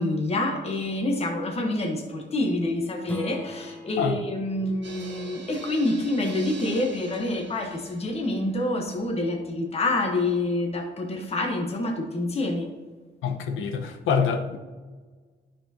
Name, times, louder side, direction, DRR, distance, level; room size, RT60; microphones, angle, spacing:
voice 1, 0.0-12.7, left 2 dB, 30° left, 2 dB, 1.2 m, -27 dB
Strum, 3.0-8.2, left 1 dB, 10° left, 1.0 m, -42 dB
sound 1, 4.8-9.9 10.2-10.3 10.6-10.7, right 3 dB, 65° right, 1.7 m, -45 dB
voice 2, 13.2-14.6, left 6 dB, 80° left, 7 dB, 0.9 m, -25 dB
9.8 x 6.1 x 2.9 m, 1.4 s
cardioid pair, 90°, 20 cm